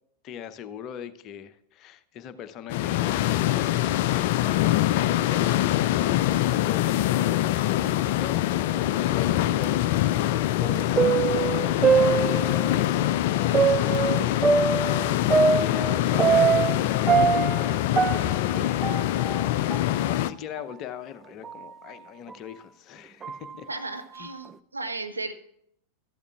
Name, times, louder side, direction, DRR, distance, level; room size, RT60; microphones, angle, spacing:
voice 1, 0.2-4.5 4.8-18.9 20.0-23.7 24.2-24.3, left 9 dB, 35° left, 11 dB, 0.7 m, -41 dB
sound 1, 2.7-20.3, left 14 dB, 50° left, 0.3 m, -24 dB
sound 2, 10.6-12.8 13.5-16.8 17.1-19.4 19.7-19.8 20.6-20.7 21.4-21.6 22.3-22.4 23.2-23.5, right 6 dB, 20° right, 0.4 m, -23 dB
voice 2, 23.7-25.3, right 3 dB, 80° right, 6 dB, 1.0 m, -35 dB
14.5 x 12.0 x 2.4 m, 0.73 s
figure-of-eight pair, 90°, 0 cm